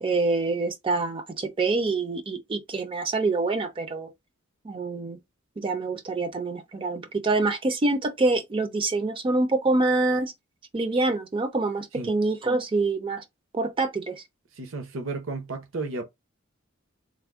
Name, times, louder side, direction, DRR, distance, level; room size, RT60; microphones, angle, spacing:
voice 1, 0.0-4.1 4.6-5.2 5.6-10.3 10.7-13.2 13.5-14.2, right 3 dB, 25° right, 0.4 m, -26 dB
voice 2, 14.5-16.0, right 3 dB, 75° right, 0.7 m, -33 dB
3.4 x 2.0 x 3.5 m
head